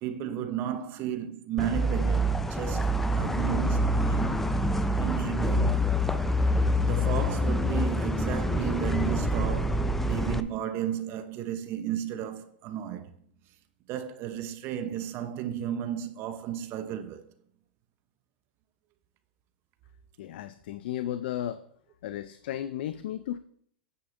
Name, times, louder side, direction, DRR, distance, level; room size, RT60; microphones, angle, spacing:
voice 1, 0.0-4.4 5.0-5.9 6.8-13.1 13.9-17.2, right 10 dB, 40° right, 0.9 m, -34 dB
sound 1, 1.6-10.4, equal, 5° left, 0.5 m, -26 dB
voice 2, 20.2-21.6 22.0-23.4, left 11 dB, 65° left, 0.5 m, -34 dB
9.4 x 8.6 x 2.7 m
hypercardioid pair, 105°, 6 cm